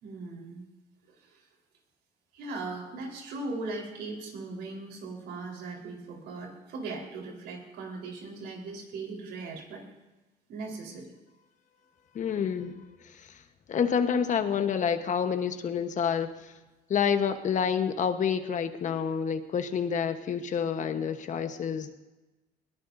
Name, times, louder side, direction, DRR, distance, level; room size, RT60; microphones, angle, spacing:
voice 1, 0.0-0.6 1.1-1.4 2.3-9.8 10.5-11.1, right 3 dB, 80° right, 0 dB, 4.3 m, -39 dB
voice 2, 12.1-13.4 13.7-16.5 16.9-21.9, left 7 dB, 45° left, 8 dB, 1.2 m, -28 dB
21.0 x 18.0 x 2.7 m, 1.1 s
cardioid pair, 110°, 17 cm